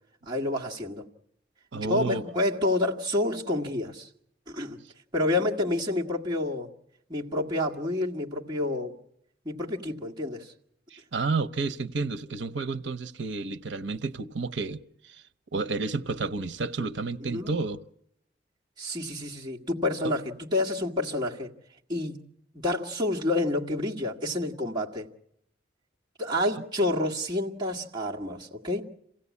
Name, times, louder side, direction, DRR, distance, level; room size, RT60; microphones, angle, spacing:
voice 1, 0.3-1.0 1.7-4.1 4.5-4.8 5.1-6.7 7.1-9.0 9.5-10.5 17.3-17.5 18.8-21.5 21.9-22.2 22.5-25.1 26.2-28.9, left 1 dB, 25° right, 1.9 m, -28 dB
voice 2, 1.7-2.2 10.9-15.2 15.5-17.8, right 4 dB, 85° right, 0.8 m, -31 dB
27.0 x 16.5 x 8.4 m
head